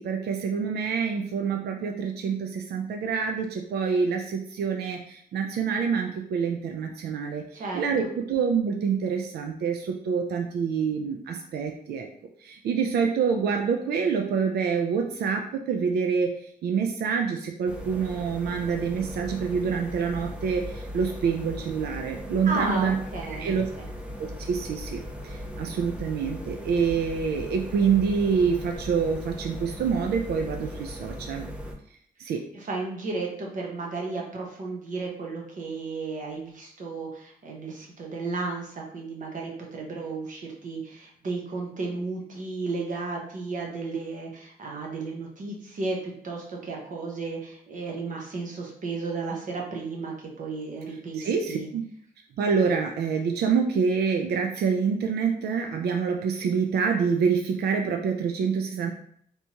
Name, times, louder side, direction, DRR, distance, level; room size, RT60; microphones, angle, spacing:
voice 1, 0.0-12.1 12.4-16.4 16.6-23.0 23.4-23.7 24.2-31.5 32.2-32.4 51.2-51.8 52.4-58.9, right 6 dB, 80° right, 3 dB, 0.4 m, -26 dB
sound 1, 17.7-31.7, equal, 5° right, 0.5 m, -38 dB
voice 2, 22.5-23.9 32.5-51.7, right 3 dB, 55° right, -1 dB, 0.9 m, -33 dB
3.4 x 2.8 x 2.8 m, 0.64 s
cardioid pair, 110°, 16 cm